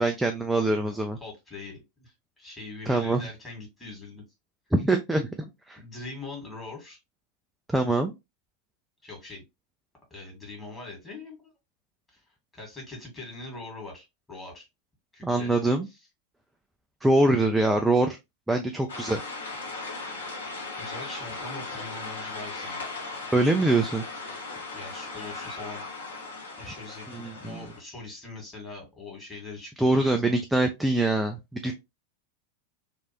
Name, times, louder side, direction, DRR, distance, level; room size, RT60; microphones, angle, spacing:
voice 1, 0.0-1.2 2.9-3.2 4.7-5.3 5.7-5.8 7.7-8.1 15.2-15.9 17.0-18.2 18.5-19.2 19.6-19.7 23.3-24.0 27.1-27.6 29.8-31.7, right 2 dB, 5° right, 0.4 m, -24 dB
voice 2, 1.2-4.2 5.8-7.0 9.0-9.4 10.1-11.5 12.1-12.2 12.5-14.7 15.1-15.5 15.9-16.0 18.8-18.9 20.8-22.8 24.7-25.9 26.6-30.4, left 3 dB, 15° left, 1.8 m, -42 dB
sound 1, 18.9-27.8, left 3 dB, 65° left, 0.9 m, -38 dB
3.1 x 2.5 x 2.8 m
figure-of-eight pair, 90°, 0 cm